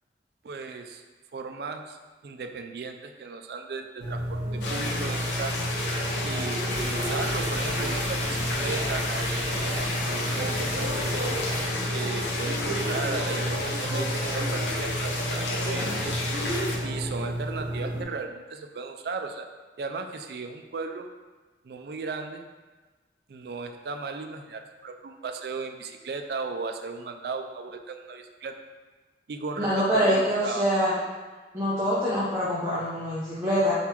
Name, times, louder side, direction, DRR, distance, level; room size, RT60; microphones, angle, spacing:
voice 1, 0.4-1.0 1.3-2.0 2.2-5.6 6.2-9.5 10.1-11.4 11.9-16.1 16.8-19.5 19.8-21.1 21.6-22.5 23.3-28.6 29.3-30.8, right 4 dB, 65° right, 5 dB, 0.4 m, -36 dB
sound 1, 4.0-18.0, right 1 dB, 85° right, 0.9 m, -31 dB
sound 2, 4.6-16.8, left 2 dB, 90° left, 0.7 m, -32 dB
sound 3, 6.7-11.7, left 1 dB, 40° left, 0.7 m, -35 dB
voice 2, 29.6-30.9 31.5-33.7, equal, 15° right, -9 dB, 0.7 m, -25 dB
4.5 x 4.0 x 2.9 m, 1.3 s
head